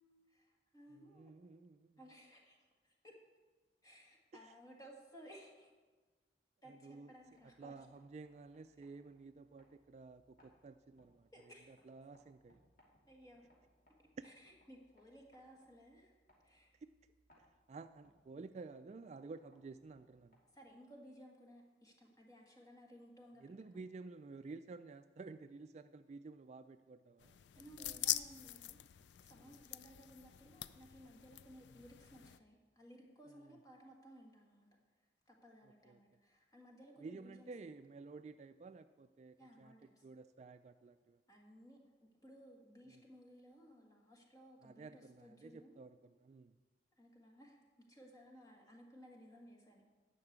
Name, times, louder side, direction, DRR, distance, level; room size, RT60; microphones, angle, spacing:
voice 1, 0.0-1.3 2.0-3.2 3.8-5.7 6.6-7.9 11.3-11.8 13.1-13.4 14.2-16.1 16.4-16.7 20.5-23.8 27.5-28.8 29.2-34.7 35.3-37.5 39.4-40.1 41.3-45.8 47.0-49.8, equal, 20° left, 0 dB, 1.7 m, -59 dB
voice 2, 0.9-2.0 4.4-4.5 6.7-7.1 7.6-12.7 16.7-16.9 17.4-20.4 23.4-28.0 29.4-29.6 33.3-33.6 35.6-36.0 37.0-39.7 40.0-41.2 42.9-43.0 44.6-46.6, right 3 dB, 40° right, 10 dB, 0.3 m, -53 dB
sound 1, 7.1-20.8, equal, 50° left, 2.8 m, -74 dB
sound 2, 27.2-32.4, left 13 dB, 85° left, 0.4 m, -44 dB
11.0 x 5.8 x 8.0 m, 1.3 s
head